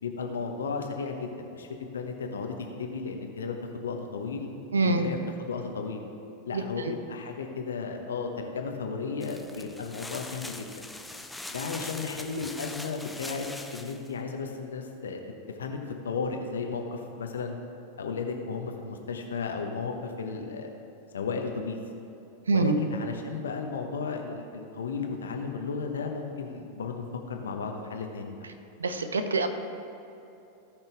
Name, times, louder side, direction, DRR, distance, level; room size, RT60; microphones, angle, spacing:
voice 1, 0.0-3.6 3.8-4.5 4.8-6.0 6.4-10.7 11.5-15.2 15.6-15.8 16.0-17.6 18.0-20.7 21.1-21.8 22.5-28.5, left 5 dB, 65° left, 3 dB, 1.0 m, -34 dB
voice 2, 4.7-5.0 6.5-6.9 22.5-22.8 28.8-29.5, right 3 dB, 70° right, 8 dB, 0.7 m, -25 dB
sound 1, 9.2-14.1, left 2 dB, 5° left, 0.5 m, -41 dB
17.5 x 5.9 x 3.4 m, 2.9 s
figure-of-eight pair, 90°, 0 cm